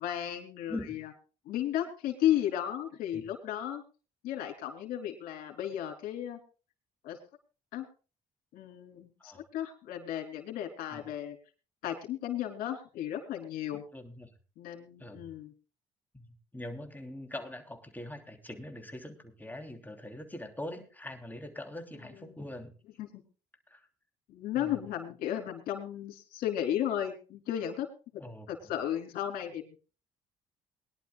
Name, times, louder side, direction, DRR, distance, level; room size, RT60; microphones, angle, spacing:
voice 1, 0.0-1.1 1.4-3.8 4.2-6.4 7.0-7.2 7.7-7.9 8.5-11.4 11.8-13.8 14.6-15.5 22.2-22.3 23.0-23.2 24.3-27.9 28.5-29.8, left 11 dB, 80° left, 3 dB, 3.2 m, -34 dB
voice 2, 13.9-14.3 15.0-15.3 16.1-22.7 23.7-23.9 24.5-24.8 28.2-28.5, left 1 dB, 10° left, 4 dB, 3.1 m, -43 dB
22.5 x 11.0 x 2.3 m, 0.35 s
supercardioid pair, 70°, 15 cm